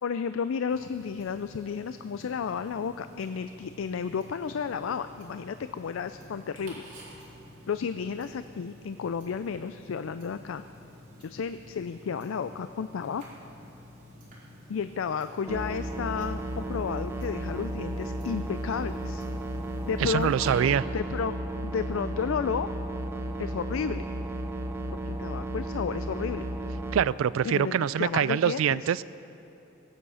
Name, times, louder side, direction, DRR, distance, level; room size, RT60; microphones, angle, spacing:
voice 1, 0.0-6.8 7.7-10.6 11.2-13.2 14.7-19.2 19.8-20.5 20.9-21.3 21.6-22.7 23.4-24.1 25.0-26.5 27.4-29.0, left 6 dB, 70° left, 11 dB, 0.4 m, -32 dB
Tick-tock, 0.7-20.5, equal, 40° right, 3.8 m, -50 dB
sound 1, 15.5-27.0, right 1 dB, 10° right, 0.6 m, -34 dB
voice 2, 20.0-20.8 26.9-29.0, right 8 dB, 75° right, 19 dB, 0.3 m, -25 dB
21.0 x 8.8 x 5.6 m, 2.9 s
head